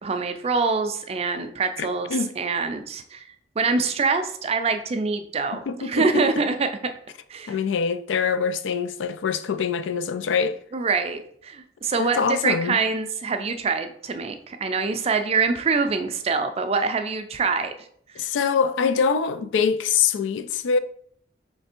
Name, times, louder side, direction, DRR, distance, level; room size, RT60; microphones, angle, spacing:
voice 1, 0.0-3.2 3.6-6.7 7.3-7.6 10.7-17.7, right 4 dB, 35° right, 0.4 m, -25 dB
voice 2, 1.8-2.3 5.7-6.2 7.5-10.6 12.0-12.8 18.2-20.8, left 6 dB, 80° left, 0.3 m, -24 dB
3.3 x 3.3 x 4.3 m
head